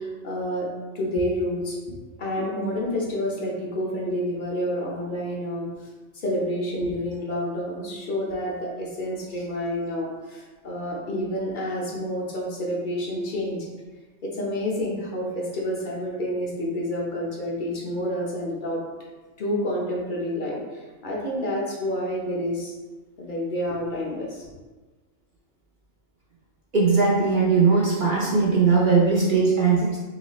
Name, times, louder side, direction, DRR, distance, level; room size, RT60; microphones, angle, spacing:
voice 1, 0.0-1.8 2.2-5.9 6.1-13.7 14.2-18.8 19.4-22.7 23.2-24.5, equal, 45° left, -3 dB, 0.9 m, -29 dB
voice 2, 26.7-30.0, right 4 dB, 50° right, -5 dB, 0.7 m, -19 dB
4.1 x 3.2 x 3.1 m, 1.3 s
omnidirectional pair, 1.4 m